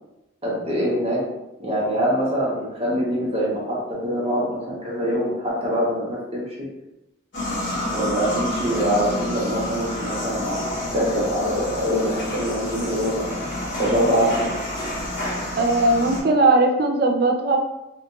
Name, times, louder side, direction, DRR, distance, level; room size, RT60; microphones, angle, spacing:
voice 1, 0.4-1.2 1.6-6.5 7.9-10.6 10.9-13.3 13.8-14.5, equal, 30° right, -5 dB, 0.8 m, -24 dB
sound 1, 7.3-16.2, left 1 dB, 65° left, 1.5 m, -28 dB
voice 2, 15.6-17.6, right 2 dB, 50° right, 3 dB, 0.4 m, -18 dB
3.7 x 2.4 x 2.7 m, 0.91 s
head